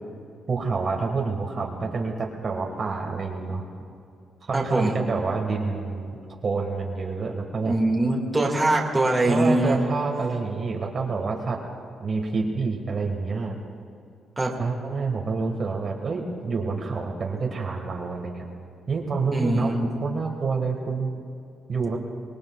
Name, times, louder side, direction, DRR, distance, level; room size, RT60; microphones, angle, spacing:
voice 1, 0.5-3.6 4.4-7.7 9.3-11.6 12.0-13.6 14.6-18.5 18.9-19.7 20.0-21.1 21.7-22.0, right 4 dB, 40° right, 0 dB, 1.6 m, -28 dB
voice 2, 4.5-5.0 7.6-9.9 14.4-14.5 19.3-19.8, right 2 dB, 10° right, -2 dB, 2.0 m, -22 dB
24.5 x 21.0 x 2.4 m, 2.4 s
cardioid pair, 140°, 0 cm